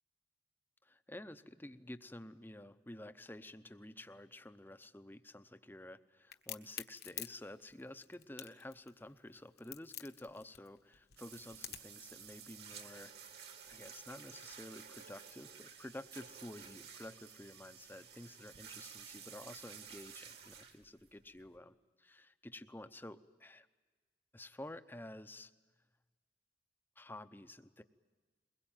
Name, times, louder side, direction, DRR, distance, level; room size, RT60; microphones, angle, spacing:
voice 1, 0.8-13.1 13.7-23.7 24.3-25.5 27.0-27.8, left 1 dB, 10° left, 11 dB, 0.7 m, -51 dB
Crack, 6.3-12.0, left 12 dB, 60° left, 1.2 m, -47 dB
sound 1, 11.2-21.6, right 7 dB, 65° right, 2.4 m, -53 dB
22.5 x 21.0 x 9.0 m, 1.4 s
head